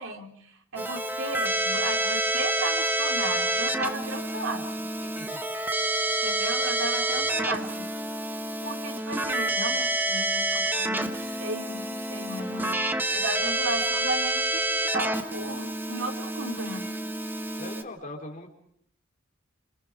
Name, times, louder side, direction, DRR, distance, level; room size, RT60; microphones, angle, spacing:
voice 1, 0.0-4.7 6.2-7.9 8.6-12.8 13.1-16.9, right 2 dB, 75° right, 4 dB, 3.3 m, -35 dB
Keyboard (musical), 0.8-17.8, right 1 dB, 10° right, 1.5 m, -28 dB
voice 2, 5.0-5.4 5.9-6.2 7.1-7.5 12.4-12.8 17.6-18.5, left 2 dB, 40° left, 2 dB, 4.4 m, -43 dB
29.0 x 26.5 x 5.0 m, 0.66 s
head